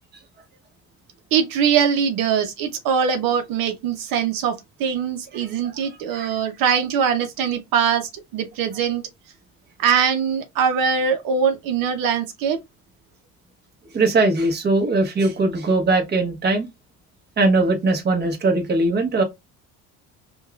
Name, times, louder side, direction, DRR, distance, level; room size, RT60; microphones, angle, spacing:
voice 1, 1.3-9.0 9.8-12.6, right 7 dB, 75° right, 0.8 m, -22 dB
voice 2, 13.9-16.7 17.4-19.2, right 2 dB, 30° right, 1.1 m, -20 dB
5.2 x 2.4 x 2.3 m
cardioid pair, 120°, 34 cm